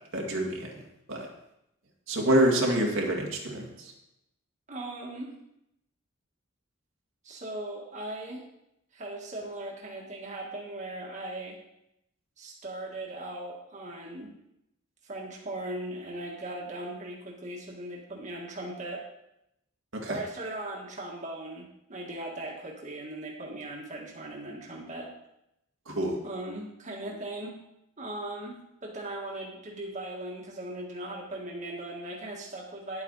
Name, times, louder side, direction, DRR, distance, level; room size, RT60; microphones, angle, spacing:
voice 1, 0.1-0.8 1.1-1.3 2.1-3.9 20.0-20.2 25.9-26.2, right 1 dB, 85° right, -1 dB, 2.1 m, -27 dB
voice 2, 4.7-5.3 7.2-8.4 8.9-11.6 12.4-14.3 15.0-19.0 20.1-25.1 26.2-27.6 28.0-33.0, right 1 dB, 40° right, -2 dB, 1.7 m, -38 dB
10.5 x 8.3 x 4.0 m, 0.83 s
head